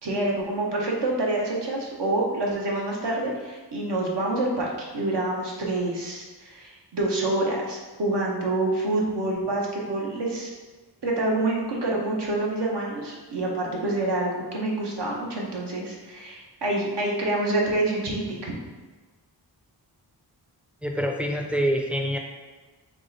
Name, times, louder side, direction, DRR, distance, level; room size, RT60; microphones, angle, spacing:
voice 1, 0.0-10.5 11.0-18.6, right 2 dB, 75° right, -2 dB, 1.1 m, -27 dB
voice 2, 20.8-22.2, equal, 5° right, 2 dB, 0.5 m, -25 dB
3.7 x 3.2 x 4.0 m, 1.3 s
wide cardioid pair, 105°, 43 cm